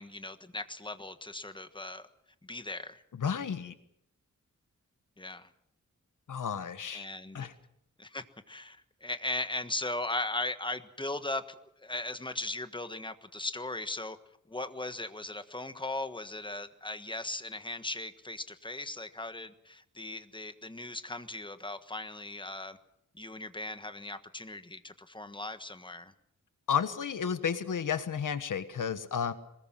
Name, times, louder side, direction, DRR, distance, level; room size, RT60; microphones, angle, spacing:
voice 1, 0.0-2.1 2.4-3.0 5.2-5.5 6.9-7.5 8.0-14.2 14.5-22.8 23.1-26.1, left 2 dB, 15° left, 10 dB, 1.3 m, -38 dB
voice 2, 3.2-3.7 6.3-7.1 7.3-7.5 26.7-29.3, left 7 dB, 75° left, 11 dB, 1.4 m, -32 dB
23.0 x 20.5 x 7.5 m, 0.75 s
wide cardioid pair, 130°, 31 cm